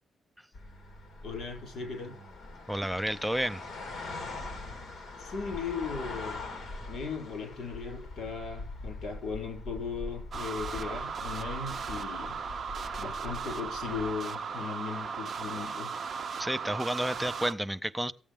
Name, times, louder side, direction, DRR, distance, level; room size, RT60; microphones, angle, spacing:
sound 1, 0.5-14.2, left 2 dB, 40° left, 2.6 m, -43 dB
voice 1, 1.2-2.2 5.2-6.4 6.9-12.4 13.0-16.0, left 5 dB, 60° left, 6.0 m, -37 dB
voice 2, 2.7-3.6 16.4-18.1, right 1 dB, 5° right, 0.5 m, -31 dB
sound 2, 10.3-17.5, right 5 dB, 45° right, 0.7 m, -37 dB
15.5 x 8.4 x 3.5 m
cardioid pair, 135°, 0 cm